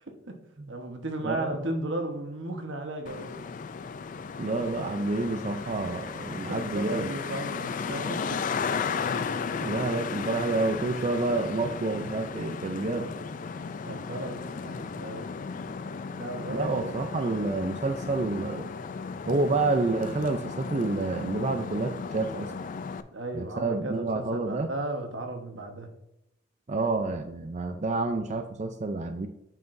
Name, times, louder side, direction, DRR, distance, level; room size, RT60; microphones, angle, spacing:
voice 1, 0.1-0.4 0.7-3.3 6.5-8.5 13.2-13.3 13.8-15.3 16.1-16.9 23.1-25.9, right 1 dB, 80° right, 1.2 m, -35 dB
voice 2, 1.2-1.5 4.4-7.1 9.6-13.1 16.5-18.6 19.3-22.5 23.3-24.7 26.7-29.3, right 3 dB, 40° right, 0.4 m, -29 dB
Traffic noise roadway noise, 3.1-23.0, left 5 dB, 45° left, 0.4 m, -35 dB
9.2 x 5.8 x 2.6 m
head